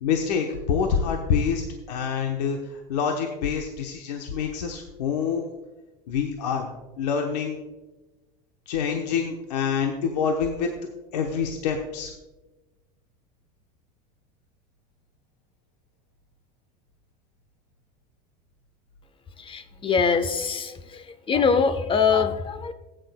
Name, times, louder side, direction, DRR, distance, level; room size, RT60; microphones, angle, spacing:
voice 1, 0.0-5.5 6.1-6.7 7.0-7.6 8.7-10.7 11.1-12.1, left 6 dB, 75° left, 3 dB, 1.0 m, -26 dB
voice 2, 19.4-22.7, left 5 dB, 25° left, 12 dB, 0.9 m, -23 dB
15.0 x 9.0 x 2.2 m, 1.1 s
hypercardioid pair, 85°, 21 cm